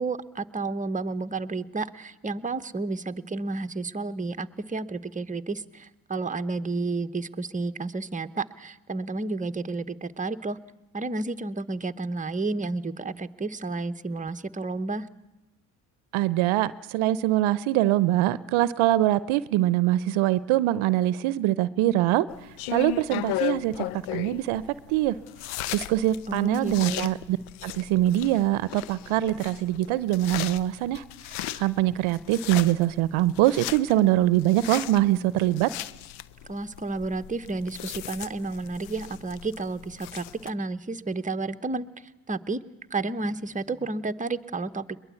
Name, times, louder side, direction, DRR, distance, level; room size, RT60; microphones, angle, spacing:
voice 1, 0.0-10.6 10.9-15.1 26.3-27.1 36.5-42.6 42.9-45.0, right 3 dB, 15° right, 10 dB, 1.0 m, -31 dB
voice 2, 16.1-22.3 22.7-23.8 24.1-24.6 24.9-25.1 25.7-27.4 27.6-31.0 31.3-35.7, right 14 dB, 75° right, 17 dB, 0.7 m, -23 dB
sound 1, 22.3-40.5, left 14 dB, 80° left, 0.8 m, -37 dB
22.0 x 21.0 x 8.3 m, 1.0 s
hypercardioid pair, 55°, 49 cm